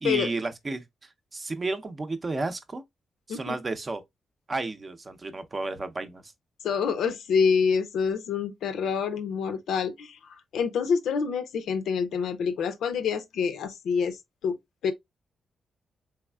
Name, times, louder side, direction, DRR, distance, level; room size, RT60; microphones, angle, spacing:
voice 1, 0.0-2.8 3.3-4.0 4.5-6.3, right 3 dB, 30° right, 0.6 m, -32 dB
voice 2, 6.6-14.6 14.8-14.9, left 6 dB, 90° left, 0.6 m, -27 dB
3.4 x 3.2 x 2.2 m
cardioid pair, 100°, 0 cm